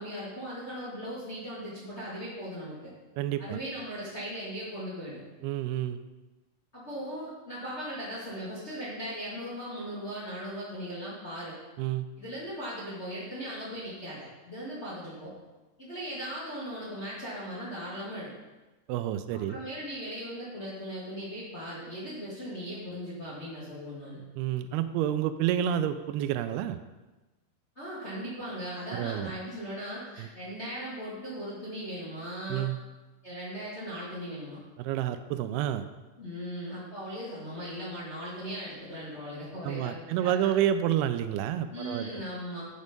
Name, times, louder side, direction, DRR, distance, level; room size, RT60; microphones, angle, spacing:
voice 1, 0.0-2.7 3.4-5.2 6.7-11.6 12.2-15.3 15.8-18.3 19.3-24.2 27.7-32.7 33.2-34.6 36.2-40.5 41.7-42.7, equal, 45° left, -9 dB, 0.8 m, -38 dB
voice 2, 3.2-3.6 5.4-6.0 11.8-12.1 18.9-19.6 24.4-26.8 28.9-29.3 30.2-30.3 32.5-32.8 34.8-35.9 39.6-42.2, right 11 dB, 85° right, 11 dB, 2.3 m, -29 dB
8.4 x 6.4 x 5.2 m, 1.1 s
omnidirectional pair, 4.9 m